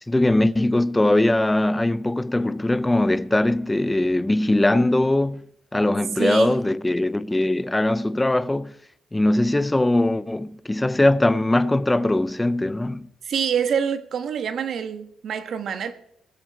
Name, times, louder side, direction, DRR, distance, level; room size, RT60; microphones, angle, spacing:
voice 1, 0.1-5.4 5.7-8.7 9.1-13.1, left 1 dB, 10° left, 0.6 m, -21 dB
voice 2, 6.2-6.6 13.2-15.9, right 7 dB, 60° right, 1.4 m, -26 dB
22.0 x 7.8 x 4.6 m
cardioid pair, 90°, 0 cm